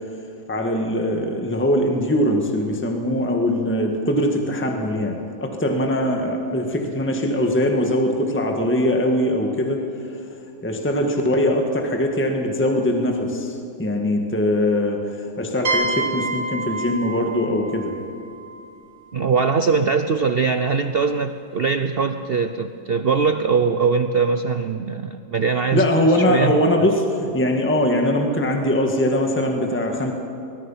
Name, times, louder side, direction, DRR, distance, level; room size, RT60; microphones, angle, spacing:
voice 1, 0.5-10.2 10.6-17.9 25.7-30.1, left 1 dB, 5° left, 2 dB, 1.7 m, -21 dB
sound 1, 15.6-19.3, right 2 dB, 55° right, 2.4 m, -28 dB
voice 2, 19.1-25.8 26.2-26.5, right 5 dB, 80° right, 8 dB, 0.5 m, -21 dB
24.0 x 20.5 x 5.8 m, 2.5 s
omnidirectional pair, 2.0 m